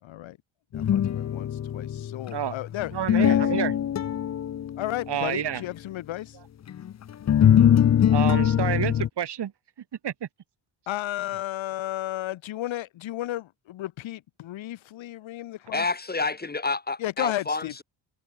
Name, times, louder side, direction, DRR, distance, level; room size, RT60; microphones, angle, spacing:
voice 1, 0.0-0.4 0.7-3.4 4.8-6.4 10.9-15.8 17.0-17.8, left 14 dB, 90° left, 2.5 m, -33 dB
sound 1, 0.7-5.2 6.7-9.1, left 9 dB, 35° left, 0.6 m, -22 dB
voice 2, 2.9-3.7 5.1-5.6 8.1-9.5 10.0-10.3, right 9 dB, 60° right, 4.8 m, -29 dB
voice 3, 15.7-17.8, left 3 dB, 20° left, 1.6 m, -29 dB
cardioid pair, 110°, 46 cm